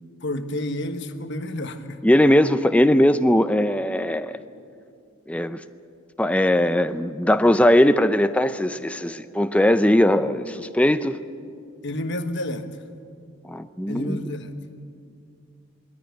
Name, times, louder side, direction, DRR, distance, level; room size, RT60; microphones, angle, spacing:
voice 1, 0.2-2.0 11.8-12.7 13.9-14.5, left 1 dB, 55° left, 8 dB, 1.3 m, -30 dB
voice 2, 2.0-4.4 5.3-5.6 6.2-11.2 13.5-14.2, left 1 dB, 5° left, 10 dB, 0.5 m, -19 dB
21.5 x 17.0 x 9.4 m, 2.4 s
head